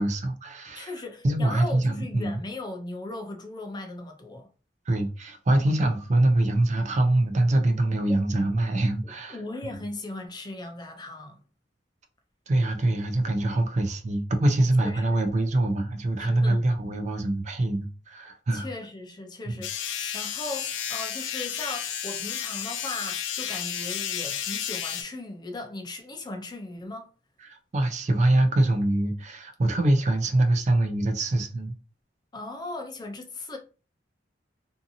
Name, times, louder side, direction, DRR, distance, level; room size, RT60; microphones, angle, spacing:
voice 1, 0.0-0.9 1.2-2.4 4.9-9.4 12.5-18.7 27.4-31.7, right 1 dB, 40° right, 0.4 m, -24 dB
voice 2, 0.7-4.5 8.1-8.2 9.3-11.4 14.8-15.1 16.2-16.6 18.5-27.1 32.3-33.6, left 2 dB, 25° left, 0.5 m, -38 dB
sound 1, 19.6-25.0, left 9 dB, 85° left, 0.4 m, -32 dB
2.7 x 2.5 x 2.6 m
head